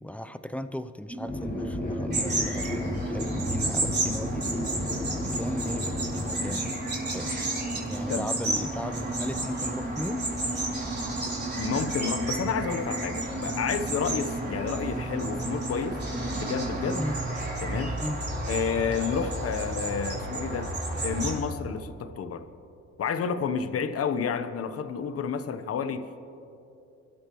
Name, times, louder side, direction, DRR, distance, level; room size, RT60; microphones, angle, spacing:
voice 1, 0.0-4.9 5.2-6.7 7.1-7.3 7.9-10.2 17.0-17.2 18.0-18.2, left 1 dB, 5° left, 11 dB, 0.6 m, -36 dB
sound 1, 1.1-17.1, right 2 dB, 20° right, 2.9 m, -36 dB
sound 2, 1.3-6.5, left 2 dB, 25° left, 1.9 m, -34 dB
sound 3, 2.1-21.4, right 2 dB, 35° right, 4.1 m, -32 dB
voice 2, 11.6-16.0 16.3-17.0 17.6-18.0 18.5-20.8 21.0-22.5 23.0-26.2, left 6 dB, 50° left, 9 dB, 1.0 m, -30 dB
27.5 x 13.0 x 3.1 m, 2.8 s
cardioid pair, 90°, 30 cm